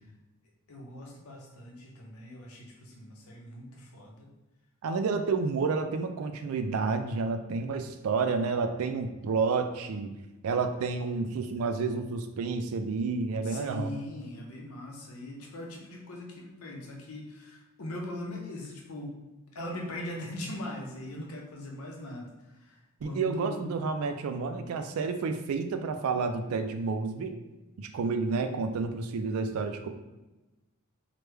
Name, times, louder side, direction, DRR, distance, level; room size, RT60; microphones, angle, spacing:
voice 1, 0.7-4.3 13.4-19.2 19.5-22.3 22.6-23.7, left 1 dB, 75° left, 0 dB, 0.7 m, -41 dB
voice 2, 4.8-10.1 10.4-13.9 23.0-27.4 27.8-29.9, right 4 dB, 70° right, 7 dB, 0.3 m, -30 dB
3.2 x 2.1 x 3.3 m, 1.1 s
head